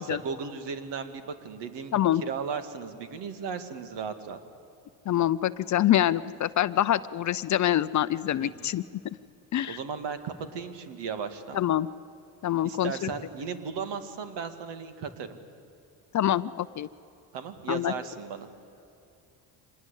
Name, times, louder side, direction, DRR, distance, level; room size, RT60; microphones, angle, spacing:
voice 1, 0.0-4.4 8.4-8.7 9.7-11.6 12.6-15.4 17.3-18.5, right 6 dB, 65° right, 9 dB, 2.1 m, -36 dB
voice 2, 5.1-8.8 9.5-9.8 11.5-11.9 12.4-13.1 16.1-16.9 17.7-17.9, left 12 dB, 40° left, 14 dB, 0.6 m, -25 dB
25.0 x 20.5 x 8.3 m, 2.7 s
cardioid pair, 110°, 45 cm